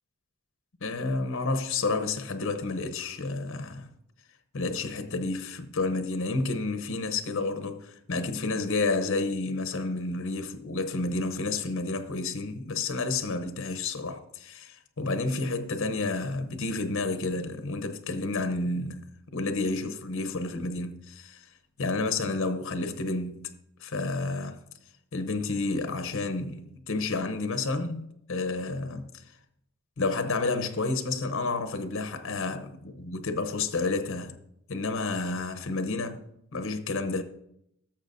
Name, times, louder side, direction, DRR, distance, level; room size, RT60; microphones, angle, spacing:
voice 1, 0.8-3.9 4.5-21.4 21.8-23.5 23.8-24.7 25.1-29.1 30.0-34.3 34.7-36.2 36.5-37.2, left 3 dB, 65° left, 0.8 m, -30 dB
13.0 x 6.9 x 2.6 m
head